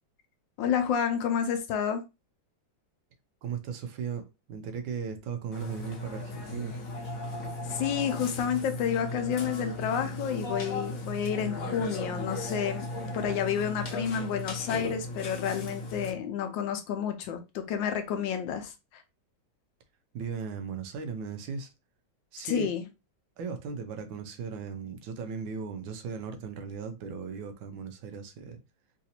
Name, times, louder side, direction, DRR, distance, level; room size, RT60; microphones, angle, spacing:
voice 1, 0.6-2.0 7.7-12.9 13.1-19.0 22.4-22.8, left 8 dB, 75° left, 1.3 m, -30 dB
voice 2, 3.4-6.8 20.1-21.7 22.3-22.7 23.4-28.6, right 6 dB, 80° right, 1.4 m, -37 dB
Burping eructation, 5.5-16.1, left 2 dB, 55° left, 1.0 m, -36 dB
3.9 x 2.6 x 2.8 m
omnidirectional pair, 2.1 m